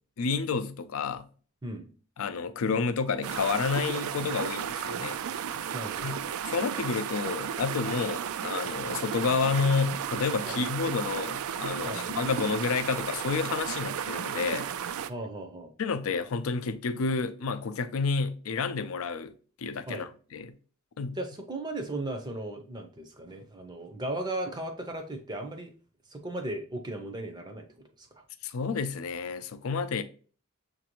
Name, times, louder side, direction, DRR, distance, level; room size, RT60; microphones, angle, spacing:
voice 1, 0.2-1.3 2.2-5.2 6.0-6.2 6.4-14.7 15.8-20.6 21.0-21.2 28.4-30.0, left 5 dB, 75° left, 0.4 m, -30 dB
sound 1, 3.2-15.1, right 8 dB, 80° right, 0.3 m, -34 dB
voice 2, 5.7-6.2 10.4-10.6 11.8-12.1 15.1-15.7 19.9-20.1 21.1-25.7 26.1-27.7 28.0-28.2, right 1 dB, 20° right, 0.5 m, -36 dB
6.7 x 2.6 x 2.9 m
head